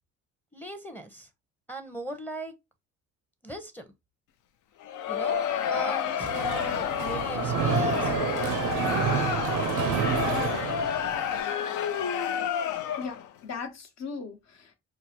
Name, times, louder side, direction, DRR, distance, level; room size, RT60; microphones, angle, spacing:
voice 1, 0.5-1.3 1.7-2.5 3.4-3.9 5.1-5.4 5.7-8.1, right 1 dB, 5° left, 0.6 m, -38 dB
Crowd, 4.8-13.3, left 8 dB, 80° left, 0.5 m, -29 dB
Mechanisms, 6.2-11.4, right 9 dB, 80° right, 0.5 m, -29 dB
voice 2, 13.0-14.8, left 5 dB, 60° left, 1.0 m, -38 dB
4.6 x 2.0 x 2.8 m
cardioid pair, 90°, 30 cm